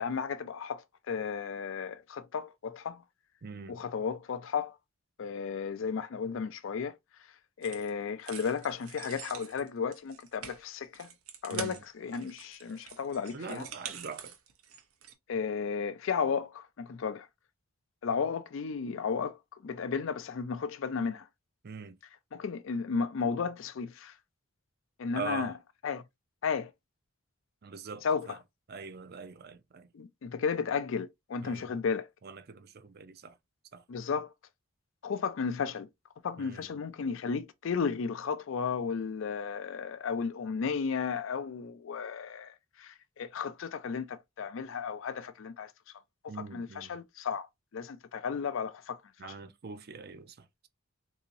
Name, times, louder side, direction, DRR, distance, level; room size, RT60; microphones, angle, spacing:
voice 1, 0.0-3.0 3.7-4.8 5.2-6.9 7.6-11.1 11.4-13.7 15.3-17.3 18.0-19.4 19.6-21.2 22.3-24.1 25.0-25.5 25.8-26.0 26.4-26.7 28.0-28.4 29.9-32.1 33.9-34.3 35.0-35.9 36.2-45.7 46.5-47.5 47.7-49.3, left 6 dB, 60° left, 0.4 m, -34 dB
voice 2, 3.4-3.8 11.5-11.8 13.3-14.3 21.6-22.0 25.1-25.5 27.6-28.4 28.7-29.9 31.4-31.7 32.2-33.4 33.7-33.8 36.4-36.7 46.3-47.0 49.2-50.5, right 5 dB, 45° right, 0.5 m, -43 dB
sound 1, 7.6-7.9 8.2-15.1, right 8 dB, 85° right, 0.8 m, -45 dB
3.8 x 2.7 x 2.6 m
head